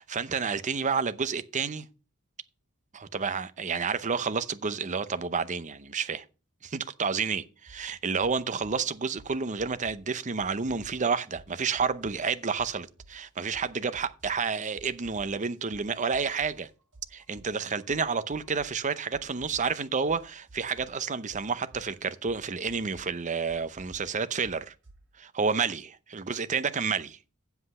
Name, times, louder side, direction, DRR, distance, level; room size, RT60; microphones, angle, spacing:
voice 1, 0.0-1.9 2.9-6.2 6.6-16.7 17.1-24.7 25.2-27.2, right 5 dB, 35° right, 0.7 m, -30 dB
sound 1, 7.7-7.9 8.2-10.1 10.4-12.3 12.6-14.5 14.7-18.9 19.1-25.0, right 2 dB, 60° right, 6.1 m, -53 dB
8.1 x 7.8 x 5.4 m
head